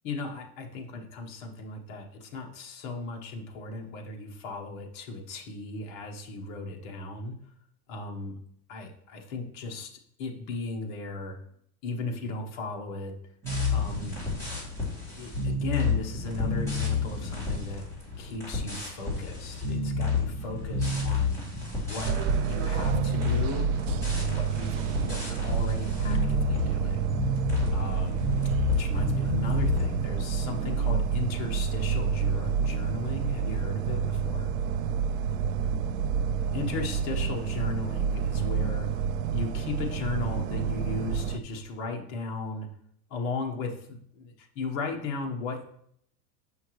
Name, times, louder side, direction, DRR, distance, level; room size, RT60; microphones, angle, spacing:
voice 1, 0.0-7.3 7.9-8.3 8.7-11.4 11.8-13.1 13.7-14.2 15.2-17.9 18.2-21.4 21.8-22.1 22.4-23.7 24.1-27.1 27.7-28.2 28.8-34.6 36.5-38.9 39.3-42.7 43.1-45.6, left 3 dB, 35° left, 1 dB, 1.1 m, -36 dB
sound 1, 13.4-30.1, left 3 dB, 5° left, 2.4 m, -30 dB
sound 2, 22.0-41.4, right 7 dB, 60° right, 0.5 m, -29 dB
7.6 x 5.7 x 3.1 m, 0.70 s
supercardioid pair, 165°, 46 cm